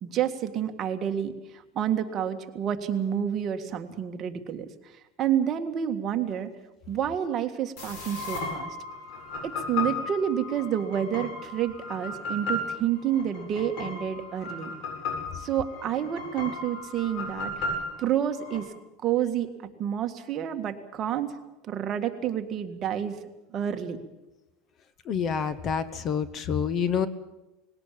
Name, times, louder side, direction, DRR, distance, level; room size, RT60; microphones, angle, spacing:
voice 1, 0.0-4.7 5.2-6.5 6.9-8.8 9.4-14.7 15.3-17.6 18.0-18.7 19.0-19.5 19.8-21.4 21.7-23.2 23.5-24.0, right 9 dB, 35° right, 5 dB, 1.8 m, -29 dB
sound 1, 7.8-18.6, left 2 dB, 55° left, 7.9 m, -35 dB
voice 2, 25.1-27.1, left 7 dB, 30° left, 15 dB, 1.0 m, -27 dB
20.0 x 17.5 x 8.6 m, 1.0 s
supercardioid pair, 145°, 0 cm